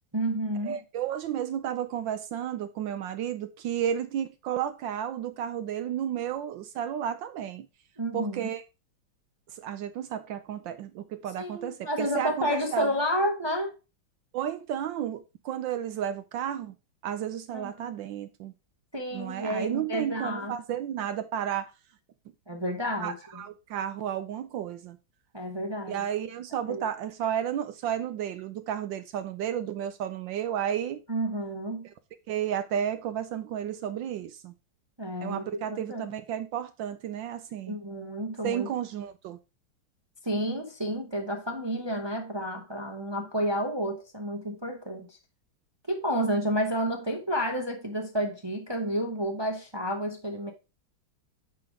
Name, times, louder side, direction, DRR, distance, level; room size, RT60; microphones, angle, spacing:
voice 1, 0.1-0.8 8.0-8.5 11.4-13.8 17.5-17.9 18.9-20.6 22.5-23.4 25.3-26.0 26.7-26.8 31.1-31.9 35.0-36.1 37.7-38.7 40.2-45.2 45.9-50.5, equal, 30° right, 0.4 m, -30 dB
voice 2, 0.6-7.7 8.1-8.6 9.5-12.9 14.3-16.7 17.0-18.5 19.1-21.7 23.0-25.0 25.9-31.0 32.3-34.5 35.2-37.8 38.4-39.4, right 9 dB, 75° right, 1.2 m, -32 dB
9.1 x 3.8 x 4.8 m
omnidirectional pair, 2.3 m